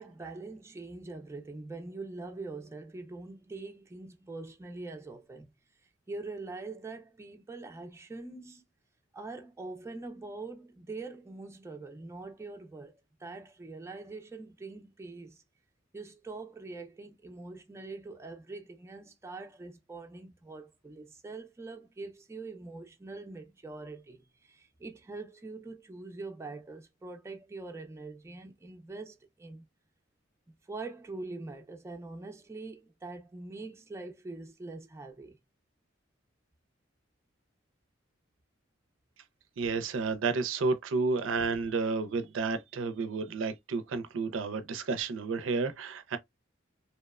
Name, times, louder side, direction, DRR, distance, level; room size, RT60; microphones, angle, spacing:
voice 1, 0.0-5.5 6.1-8.6 9.1-15.4 15.9-29.6 30.7-35.4, right 3 dB, 15° right, 0.4 m, -43 dB
voice 2, 39.6-46.2, right 4 dB, 75° right, 0.4 m, -31 dB
2.8 x 2.0 x 2.2 m
head